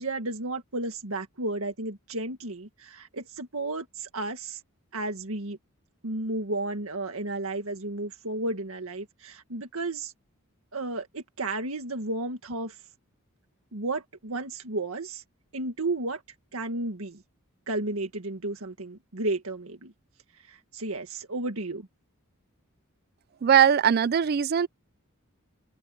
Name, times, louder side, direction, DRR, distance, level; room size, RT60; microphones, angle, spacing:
voice 1, 0.0-4.6 4.9-5.6 6.0-10.1 10.7-12.8 13.7-15.2 15.5-16.2 16.5-17.2 17.7-19.9 20.3-21.9, right 2 dB, 85° right, 1.8 m, -33 dB
voice 2, 23.4-24.7, right 8 dB, 45° right, 0.4 m, -20 dB
open air
head